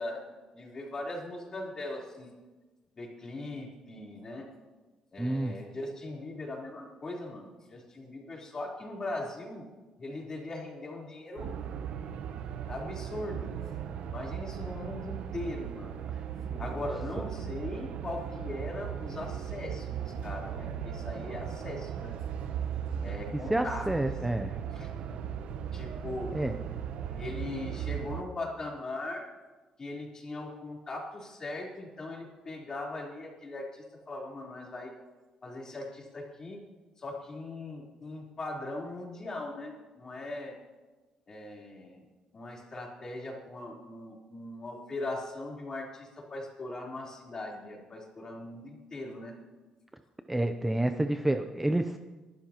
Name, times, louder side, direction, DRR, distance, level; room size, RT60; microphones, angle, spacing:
voice 1, 0.0-2.3 3.0-4.5 5.1-9.7 10.0-11.6 12.1-12.3 12.7-13.5 14.1-15.9 16.6-22.2 23.0-23.9 24.7-24.9 25.7-26.4 27.2-29.3 29.8-34.9 35.4-36.6 37.0-40.5 41.3-42.1 42.3-49.3, left 2 dB, 30° left, -2 dB, 3.8 m, -40 dB
voice 2, 5.2-5.6 16.5-16.6 23.3-24.5 26.3-26.6 50.3-52.0, right 1 dB, 10° right, 8 dB, 0.6 m, -29 dB
sound 1, 11.4-28.2, right 8 dB, 75° right, 0.8 m, -37 dB
24.5 x 12.0 x 3.0 m, 1.2 s
cardioid pair, 115°, 2 cm